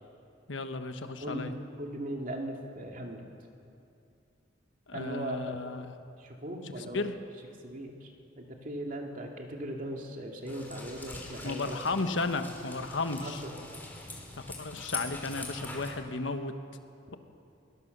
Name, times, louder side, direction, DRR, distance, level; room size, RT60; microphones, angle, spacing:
voice 1, 0.5-1.5 4.9-5.9 6.6-7.1 11.4-13.4 14.4-16.5, left 3 dB, 80° left, 8 dB, 1.3 m, -34 dB
voice 2, 1.2-3.2 4.9-5.6 6.2-7.1 7.6-8.1 8.4-11.8 13.2-13.5, right 1 dB, 45° right, 1 dB, 2.6 m, -38 dB
sound 1, 10.5-15.9, left 2 dB, 10° left, 3.5 m, -43 dB
22.0 x 18.5 x 6.8 m, 2.6 s
head